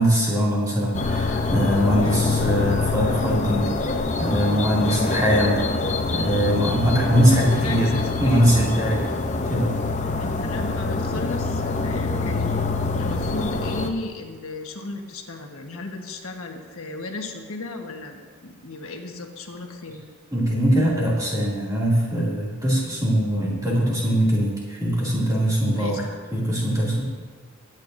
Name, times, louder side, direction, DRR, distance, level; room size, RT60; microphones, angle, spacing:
voice 1, 0.0-9.1 9.5-9.8 20.3-26.0 26.3-27.0, equal, 15° right, -5 dB, 2.5 m, -22 dB
sound 1, 0.9-13.9, left 3 dB, 35° left, 0.6 m, -25 dB
voice 2, 7.4-8.5 10.2-12.7 13.0-20.0 25.7-26.0, left 2 dB, 80° left, 2 dB, 1.3 m, -34 dB
22.0 x 9.2 x 2.6 m, 1.5 s
head